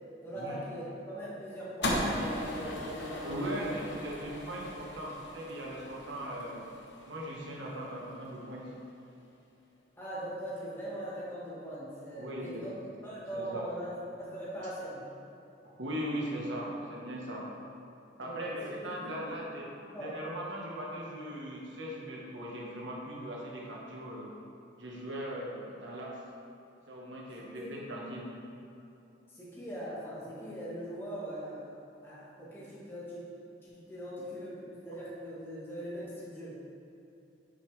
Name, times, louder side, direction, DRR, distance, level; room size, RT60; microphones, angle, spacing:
voice 1, 0.2-3.7 10.0-12.7 13.0-15.0 18.2-19.1 19.8-20.1 27.6-27.8 29.3-31.8 32.0-33.2 33.7-36.6, equal, 10° left, -9 dB, 1.7 m, -41 dB
sound 1, 1.8-8.2, left 1 dB, 60° left, 1.1 m, -37 dB
voice 2, 3.2-6.6 7.0-8.7 12.2-12.7 13.3-13.7 15.8-17.4 18.2-19.7 20.0-24.3 24.8-26.1 26.9-28.3, equal, 75° right, -3 dB, 1.4 m, -39 dB
8.8 x 5.7 x 3.4 m, 2.7 s
head